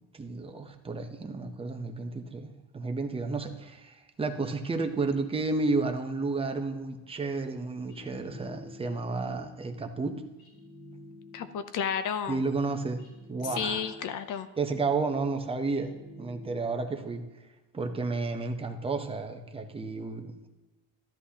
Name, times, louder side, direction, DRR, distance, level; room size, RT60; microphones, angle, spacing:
voice 1, 0.1-2.5 2.7-10.2 12.3-13.0 13.3-13.8 14.6-15.9 16.2-17.2 17.7-20.5, right 3 dB, 15° right, 4 dB, 0.7 m, -32 dB
sound 1, 7.9-9.2 10.4-11.7 13.0-14.4 15.7-17.0, left 2 dB, 75° left, 3.7 m, -49 dB
voice 2, 11.3-12.4 13.4-14.5, left 7 dB, 55° left, 11 dB, 0.6 m, -32 dB
13.0 x 10.5 x 2.8 m, 1.1 s
cardioid pair, 165°, 39 cm